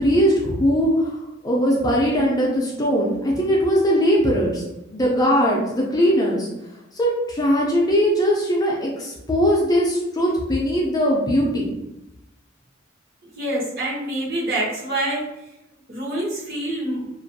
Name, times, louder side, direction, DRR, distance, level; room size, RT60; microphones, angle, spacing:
voice 1, 0.0-4.6 4.9-6.5 6.9-11.7, equal, 20° left, -3 dB, 0.4 m, -20 dB
voice 2, 13.4-15.2 15.9-17.1, right 1 dB, 50° right, -6 dB, 1.0 m, -26 dB
2.5 x 2.3 x 2.6 m, 0.92 s
head